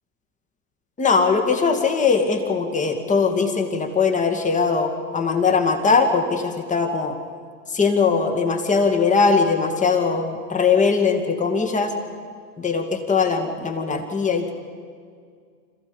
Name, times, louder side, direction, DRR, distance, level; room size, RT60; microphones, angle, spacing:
voice 1, 1.0-7.2 7.7-11.9 12.6-14.5, left 5 dB, 15° left, 4 dB, 2.3 m, -20 dB
26.5 x 15.0 x 7.1 m, 2.1 s
hypercardioid pair, 120°, 49 cm